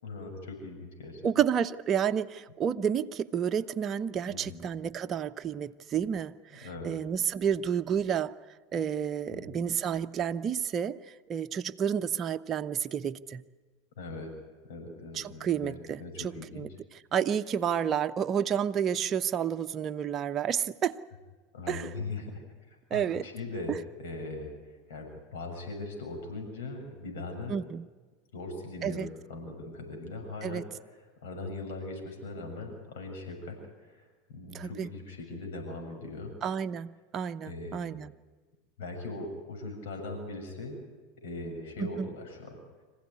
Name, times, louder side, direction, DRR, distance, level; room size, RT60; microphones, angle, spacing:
voice 1, 0.0-1.2 4.2-4.7 6.5-7.0 9.3-9.8 14.0-14.3 14.6-16.7 21.5-27.6 28.3-30.7 30.9-36.3 37.4-38.0 38.8-40.8 41.2-42.6, left 2 dB, 65° left, 3 dB, 6.9 m, -40 dB
voice 2, 1.2-8.3 8.7-11.0 11.3-13.4 15.1-16.7 17.1-21.0 21.7-21.8 22.9-23.3 27.5-27.8 28.8-29.1 30.4-30.6 34.5-34.9 36.4-38.1 41.8-42.1, right 8 dB, 30° right, 8 dB, 0.9 m, -30 dB
25.5 x 15.5 x 9.7 m, 1.3 s
figure-of-eight pair, 80°, 0 cm